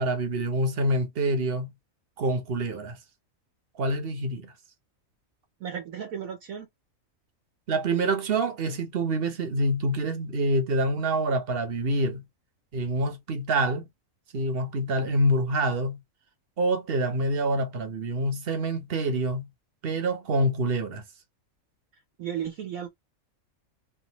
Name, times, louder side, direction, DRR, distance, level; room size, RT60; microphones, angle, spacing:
voice 1, 0.0-1.7 2.2-3.0 3.8-4.5 7.7-12.2 12.7-13.8 14.3-16.0 16.6-19.5 19.8-21.0, right 1 dB, 50° right, 0.9 m, -26 dB
voice 2, 5.6-6.7 22.2-22.9, right 8 dB, 85° right, 1.2 m, -34 dB
3.4 x 2.5 x 2.8 m
omnidirectional pair, 1.4 m